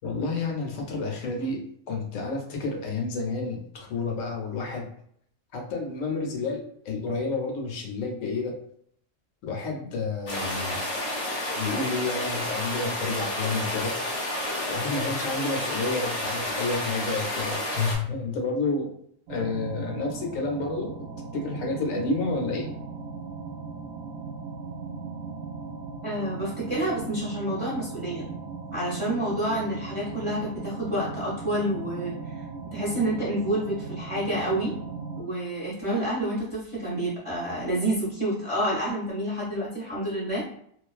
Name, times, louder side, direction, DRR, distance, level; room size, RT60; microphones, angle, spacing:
voice 1, 0.0-4.8 5.5-8.6 9.4-10.8 11.5-13.9 14.7-18.9 19.3-20.9 21.3-22.7, left 3 dB, 75° left, 1 dB, 1.0 m, -30 dB
sound 1, 10.3-18.0, left 1 dB, 40° left, 0.5 m, -30 dB
sound 2, 19.3-35.2, right 4 dB, 65° right, 0.7 m, -38 dB
voice 2, 26.0-28.3 28.7-32.2 32.7-34.7 35.2-40.4, right 1 dB, 30° right, -7 dB, 0.6 m, -28 dB
2.4 x 2.2 x 2.3 m, 0.67 s
omnidirectional pair, 1.4 m